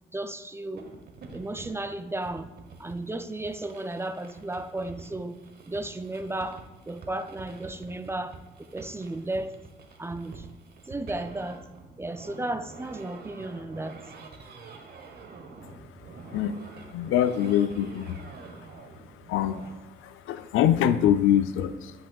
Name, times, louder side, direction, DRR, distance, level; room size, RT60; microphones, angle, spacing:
voice 1, 0.1-0.8 1.3-9.6 10.0-10.5 10.9-11.7 12.0-14.0, right 2 dB, 15° right, 10 dB, 0.3 m, -34 dB
sound 1, 0.8-19.7, right 4 dB, 50° right, 1.1 m, -47 dB
voice 2, 16.9-18.2 19.3-19.6 20.0-21.9, left 10 dB, 85° left, 12 dB, 0.4 m, -24 dB
10.5 x 5.4 x 2.3 m, 1.1 s
cardioid pair, 90°, 20 cm